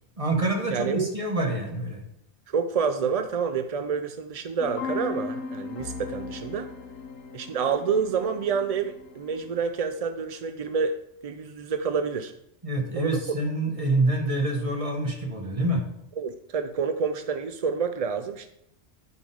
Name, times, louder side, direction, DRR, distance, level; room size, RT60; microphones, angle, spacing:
voice 1, 0.2-2.0 12.6-15.8, right 2 dB, 30° right, 1 dB, 1.6 m, -26 dB
voice 2, 0.7-1.1 2.5-6.7 7.3-10.9 11.2-12.3 12.9-13.2 16.2-18.5, right 6 dB, 60° right, 8 dB, 0.4 m, -28 dB
sound 1, 4.6-9.6, left 4 dB, 70° left, 1.1 m, -37 dB
12.0 x 5.3 x 3.6 m, 0.76 s
omnidirectional pair, 1.2 m